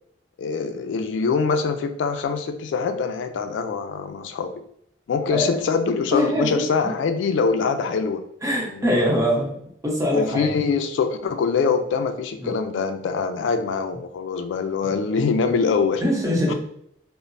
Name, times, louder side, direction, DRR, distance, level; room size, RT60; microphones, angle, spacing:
voice 1, 0.4-4.5 5.1-8.2 8.7-9.2 10.1-16.0 16.5-16.6, left 5 dB, 85° left, 8 dB, 0.3 m, -24 dB
voice 2, 6.1-6.9 8.4-9.5 9.8-10.6 12.4-12.5 14.8-14.9 16.0-16.5, equal, 20° right, -3 dB, 0.8 m, -23 dB
3.1 x 2.0 x 2.5 m, 0.71 s
head